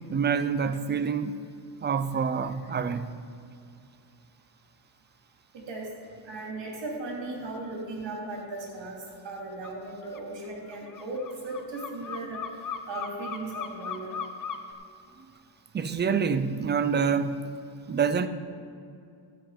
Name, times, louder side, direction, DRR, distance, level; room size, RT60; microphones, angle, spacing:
voice 1, 0.1-1.4 1.8-3.1 15.7-17.3 17.9-18.3, right 6 dB, 25° right, 0.4 m, -26 dB
voice 2, 5.5-5.9 6.2-9.0 9.2-12.4 12.9-14.2, right 2 dB, 85° right, 2.9 m, -37 dB
sound 1, 9.6-9.8 10.0-14.7, left 7 dB, 50° left, 0.8 m, -37 dB
13.0 x 7.8 x 5.0 m
cardioid pair, 130°, 43 cm